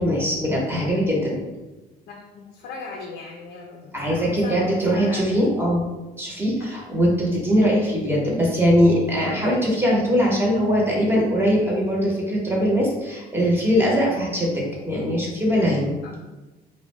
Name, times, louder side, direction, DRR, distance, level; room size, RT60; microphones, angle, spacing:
voice 1, 0.0-1.4 3.9-5.9 6.2-16.0, equal, 15° right, -4 dB, 0.7 m, -21 dB
voice 2, 2.1-4.6 4.9-5.3 6.6-6.7 16.2-16.3, left 4 dB, 70° left, 0 dB, 0.4 m, -38 dB
2.4 x 2.1 x 3.1 m, 1.1 s
cardioid pair, 110°, 17 cm